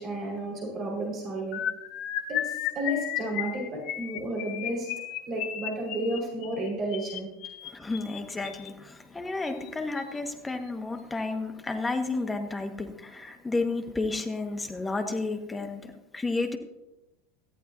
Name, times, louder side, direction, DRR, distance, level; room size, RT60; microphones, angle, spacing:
voice 1, 0.0-1.6 2.3-4.9 5.3-7.3, right 1 dB, 35° right, -1 dB, 5.1 m, -32 dB
sound 1, 1.5-8.7 9.5-9.7 10.0-10.2 10.5-10.7, left 11 dB, 50° left, 1.0 m, -34 dB
voice 2, 7.6-16.6, left 3 dB, 15° left, 6 dB, 1.7 m, -32 dB
18.5 x 14.0 x 2.8 m, 0.98 s
figure-of-eight pair, 80°, 0 cm